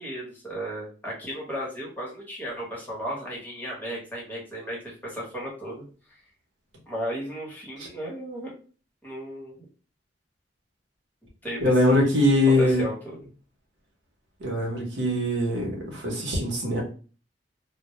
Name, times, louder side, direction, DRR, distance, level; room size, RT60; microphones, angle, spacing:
voice 1, 0.0-5.8 6.9-8.5 9.0-9.5 11.4-12.1 12.6-13.2, equal, 10° left, -5 dB, 0.9 m, -35 dB
voice 2, 11.6-12.8 14.4-16.8, left 1 dB, 80° right, 0 dB, 0.8 m, -22 dB
2.1 x 2.0 x 2.9 m, 0.39 s
head